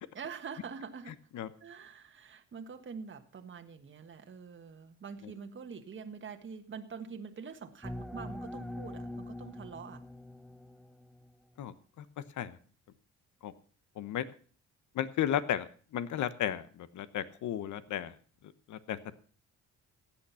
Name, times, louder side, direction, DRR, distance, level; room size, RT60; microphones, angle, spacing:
voice 1, 0.1-1.2 1.6-10.0, right 6 dB, 40° right, 6 dB, 1.4 m, -45 dB
sound 1, 7.8-11.3, left 1 dB, ahead, 0.8 m, -43 dB
voice 2, 11.6-12.0 12.4-12.6 13.4-13.5 14.0-14.3 14.9-18.2 18.7-19.2, left 10 dB, 75° left, 14 dB, 1.1 m, -34 dB
15.0 x 9.0 x 5.6 m, 0.43 s
cardioid pair, 90°, 30 cm